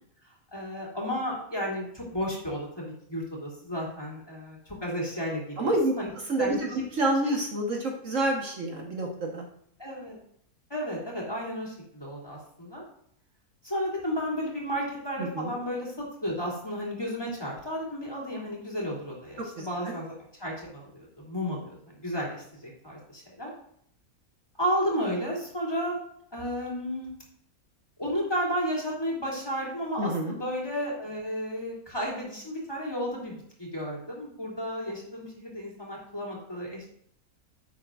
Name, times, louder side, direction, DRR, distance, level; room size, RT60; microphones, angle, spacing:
voice 1, 0.5-6.1 6.4-6.8 9.8-10.2 10.7-12.8 13.6-23.5 24.6-26.0 26.3-27.1 28.0-36.9, equal, 15° left, -4 dB, 3.1 m, -33 dB
voice 2, 5.6-5.9 6.3-9.4 15.2-15.5 19.4-19.9 30.0-30.3, right 1 dB, 60° right, -1 dB, 1.7 m, -28 dB
11.0 x 7.9 x 2.5 m, 0.67 s
omnidirectional pair, 1.5 m